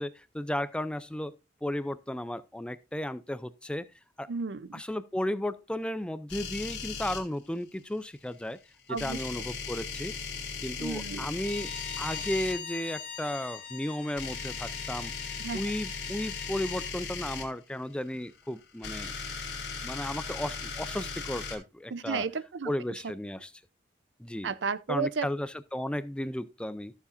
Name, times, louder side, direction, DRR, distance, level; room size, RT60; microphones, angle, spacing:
voice 1, 0.0-1.3 1.6-3.9 4.2-4.3 4.7-8.6 8.9-10.1 10.6-11.7 12.0-15.1 15.5-19.1 19.8-22.3 22.7-23.5 24.2-24.5 24.9-26.9, left 1 dB, 5° left, 0.4 m, -34 dB
voice 2, 4.3-4.8 8.9-9.2 10.8-11.3 15.4-15.6 21.9-22.7 24.4-25.3, right 5 dB, 70° right, 0.6 m, -33 dB
sound 1, 6.3-7.2 8.9-12.5 14.1-17.4 18.6-21.6, left 5 dB, 70° left, 2.5 m, -37 dB
Bowed string instrument, 11.4-16.9, left 6 dB, 50° left, 1.8 m, -42 dB
13.5 x 7.0 x 2.5 m
head